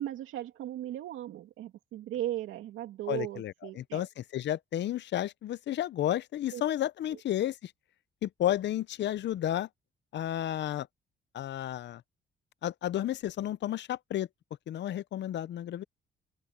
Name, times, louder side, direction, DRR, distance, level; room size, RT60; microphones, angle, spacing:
voice 1, 0.0-4.1 6.5-6.6 7.1-7.2, right 13 dB, 90° right, 2.6 m, -37 dB
voice 2, 3.1-7.7 8.2-9.7 10.1-10.9 11.3-12.0 12.6-14.3 14.7-15.8, left 12 dB, 65° left, 0.7 m, -32 dB
open air
cardioid pair, 90°, 20 cm